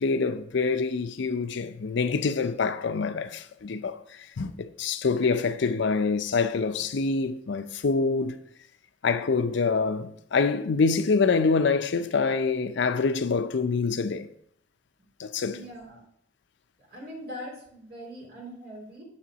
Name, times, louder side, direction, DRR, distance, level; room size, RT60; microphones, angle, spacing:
voice 1, 0.0-4.0 4.4-8.3 9.0-14.3 15.2-15.6, left 4 dB, 70° left, 0.5 m, -26 dB
voice 2, 15.4-16.0 16.9-19.0, equal, 55° right, 3.3 m, -41 dB
7.5 x 4.3 x 6.1 m
head